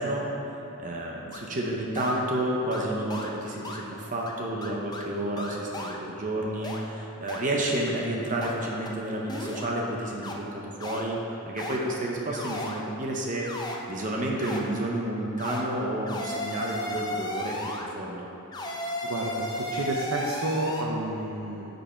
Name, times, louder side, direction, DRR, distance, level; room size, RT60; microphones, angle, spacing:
voice 1, 0.0-11.2 11.5-18.3, right 1 dB, 35° right, -2 dB, 0.8 m, -30 dB
sound 1, 1.3-1.4 2.0-2.2 2.7-2.8 3.1-3.3 3.6-3.8 4.3-4.4 4.6-5.0 5.4-6.0 6.6-6.8 7.3-7.4 7.9-8.0 8.4-8.5 8.9-9.0 9.3-9.7 10.2-10.3 10.8-11.0 11.6-11.8 12.3-12.8 13.4-13.8 14.4-14.6 15.4-15.6 16.1-17.9 18.5-20.8, left 1 dB, 20° left, 0.6 m, -34 dB
voice 2, 18.8-21.7, right 2 dB, 80° right, -2 dB, 0.8 m, -31 dB
9.7 x 5.5 x 4.4 m, 2.9 s
head